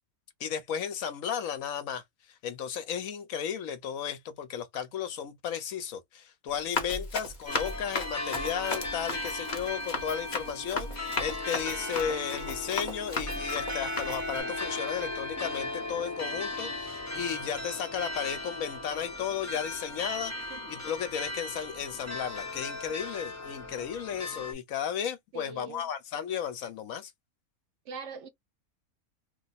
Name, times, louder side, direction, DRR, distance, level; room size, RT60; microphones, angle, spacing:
voice 1, 0.4-27.1, left 8 dB, 70° left, 1.0 m, -34 dB
Run, 6.5-14.4, left 3 dB, 35° left, 1.0 m, -36 dB
sound 1, 7.5-24.5, left 2 dB, 15° left, 0.8 m, -37 dB
voice 2, 25.3-25.9 27.9-28.3, right 4 dB, 65° right, 0.9 m, -41 dB
2.9 x 2.1 x 4.0 m
omnidirectional pair, 1.5 m